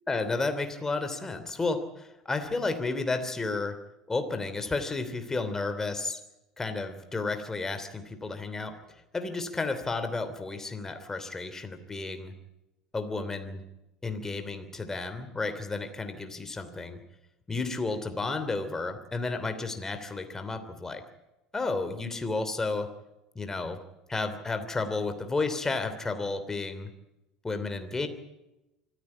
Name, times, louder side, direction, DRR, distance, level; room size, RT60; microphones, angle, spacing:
voice 1, 0.1-3.8 4.1-6.2 6.6-8.8 9.1-12.3 12.9-13.6 14.0-17.0 17.5-21.0 21.5-23.0 23.3-23.8 24.1-26.9 27.4-28.1, left 3 dB, 15° left, 9 dB, 3.0 m, -32 dB
25.5 x 14.5 x 8.5 m, 0.95 s
hypercardioid pair, 75°, 3 cm